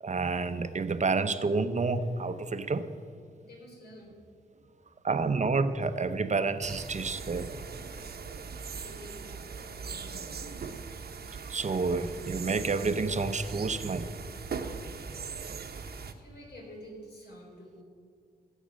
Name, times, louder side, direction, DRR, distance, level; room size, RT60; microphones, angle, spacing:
voice 1, 0.0-2.9 5.0-7.6 11.3-14.1, right 4 dB, 40° right, 10 dB, 0.8 m, -29 dB
voice 2, 3.5-4.2 8.4-10.8 16.1-17.8, equal, 70° left, -1 dB, 4.4 m, -50 dB
sound 1, 6.6-16.1, right 5 dB, 65° right, 1.0 m, -40 dB
16.5 x 8.2 x 6.4 m, 2.2 s
wide cardioid pair, 95°, 18 cm